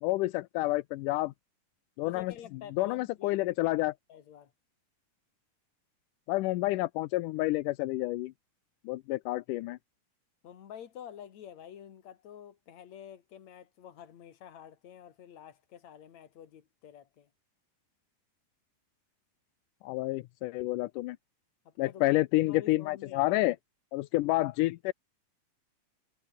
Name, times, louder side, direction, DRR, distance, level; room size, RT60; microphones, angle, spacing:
voice 1, 0.0-1.3 2.0-2.3 2.8-3.9 6.3-8.3 8.9-9.8 19.8-21.2 21.8-23.6 23.9-24.9, left 19 dB, 85° left, 2.2 m, -29 dB
voice 2, 2.0-3.3 3.6-3.7 4.1-4.5 10.4-17.3 21.6-23.4, left 9 dB, 60° left, 3.2 m, -49 dB
omnidirectional pair, 3.7 m